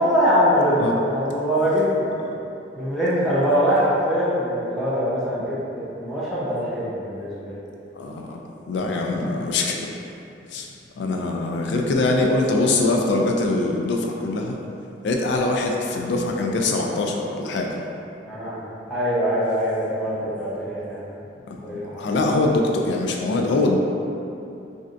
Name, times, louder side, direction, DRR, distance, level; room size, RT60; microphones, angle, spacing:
voice 1, 0.0-2.0 2.8-5.5 6.0-7.6 18.3-21.0 21.6-21.9, equal, ahead, -10 dB, 0.6 m, -22 dB
voice 2, 8.0-8.4 8.7-9.9 10.5-10.7 11.0-14.6 15.0-17.8 21.5-21.6 21.9-23.8, left 2 dB, 70° left, 1 dB, 0.3 m, -23 dB
3.2 x 2.6 x 2.5 m, 2.7 s
head